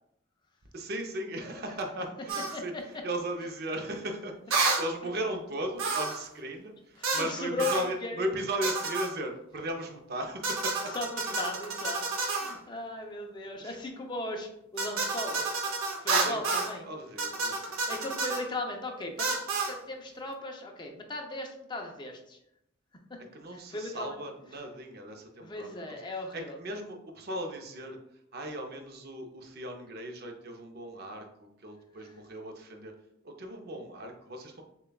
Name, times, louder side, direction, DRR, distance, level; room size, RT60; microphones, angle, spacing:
voice 1, 0.7-10.9 11.2-11.3 12.4-12.7 13.6-13.8 16.1-16.5 16.8-17.8 23.3-26.0 26.3-32.9 33.2-34.6, right 1 dB, 50° right, 3 dB, 0.6 m, -37 dB
sound 1, 2.3-2.6 4.5-4.9 5.8-6.2 7.0-7.3 7.6-7.9 8.6-9.1 10.4-12.5 14.8-16.7 17.2-18.4 19.2-19.7, right 3 dB, 85° right, 0.7 m, -30 dB
voice 2, 7.0-8.3 10.9-11.1 11.4-16.9 17.9-19.4 19.7-22.4 23.1-23.2 23.5-24.1 25.4-26.6, left 2 dB, 20° left, 2 dB, 0.5 m, -37 dB
6.6 x 2.3 x 2.2 m, 0.79 s
head